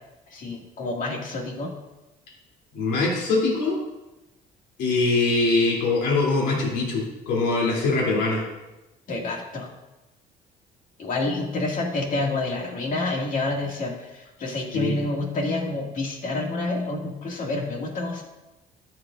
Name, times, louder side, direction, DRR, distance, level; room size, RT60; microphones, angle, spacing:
voice 1, 0.3-1.7 9.1-9.7 11.0-18.2, left 2 dB, 50° left, 0 dB, 2.3 m, -28 dB
voice 2, 2.7-3.8 4.8-8.4 14.7-15.0, left 3 dB, 85° left, -3 dB, 3.2 m, -23 dB
13.0 x 7.9 x 2.6 m, 1.0 s
cardioid pair, 110°, 17 cm